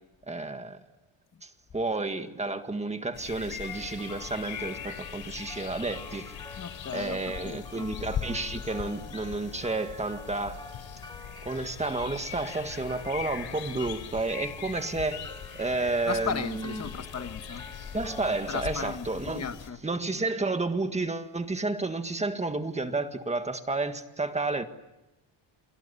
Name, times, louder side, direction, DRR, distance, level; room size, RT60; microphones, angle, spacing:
voice 1, 0.3-0.8 1.4-6.3 6.9-10.6 11.4-15.2 15.5-16.9 17.9-19.5 19.8-24.6, right 3 dB, 15° right, 1.7 m, -31 dB
sound 1, 3.1-19.7, left 9 dB, 60° left, 3.3 m, -41 dB
sound 2, 3.6-19.6, left 2 dB, 10° left, 1.1 m, -48 dB
voice 2, 6.6-7.2 7.4-7.9 16.0-17.6 18.5-19.1 19.3-19.8, left 6 dB, 30° left, 1.4 m, -35 dB
30.0 x 23.5 x 8.3 m
cardioid pair, 180°, 50 cm